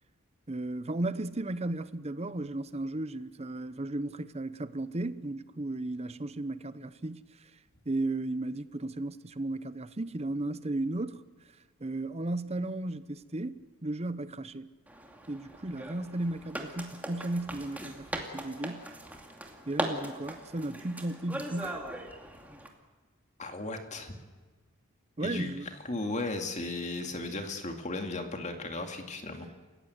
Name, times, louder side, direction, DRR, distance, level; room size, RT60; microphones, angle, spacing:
voice 1, 0.5-7.5 7.9-11.2 11.8-14.7 15.3-18.9 19.7-21.9 25.2-25.7, right 2 dB, 30° right, 0.8 m, -35 dB
sound 1, 14.9-22.7, right 1 dB, 10° right, 2.5 m, -40 dB
voice 2, 23.4-24.1 25.2-25.5 25.8-29.5, left 2 dB, 35° left, 2.3 m, -35 dB
29.0 x 16.0 x 8.0 m
head